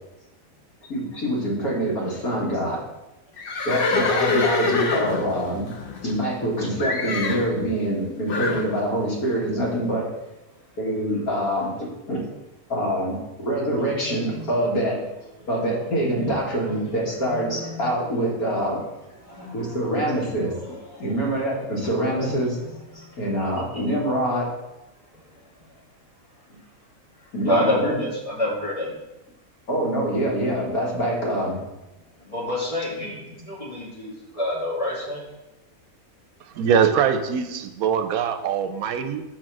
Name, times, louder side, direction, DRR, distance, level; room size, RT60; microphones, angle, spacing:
voice 1, 0.9-2.8 3.7-5.7 6.0-10.1 10.8-12.2 12.7-15.0 15.5-17.5 17.8-18.8 19.5-20.5 21.0-22.6 23.2-24.5 27.3-28.0 29.7-31.6, right 1 dB, 85° left, -3 dB, 2.3 m, -25 dB
Livestock farm animals working animals, 3.4-6.5 6.8-7.5 8.3-8.7, left 4 dB, 45° left, 0.8 m, -25 dB
voice 2, 5.0-5.4 6.0-6.1 6.6-7.1 10.9-11.2 12.7-13.0 13.5-14.9 15.4-18.0 18.7-18.9 19.1-21.7 22.0-23.9 25.1-25.4 27.2-29.0 32.2-35.2, left 1 dB, 25° left, -6 dB, 2.3 m, -31 dB
voice 3, 36.4-39.2, right 7 dB, 80° right, 9 dB, 1.1 m, -22 dB
6.1 x 4.4 x 6.0 m, 0.99 s
omnidirectional pair, 1.5 m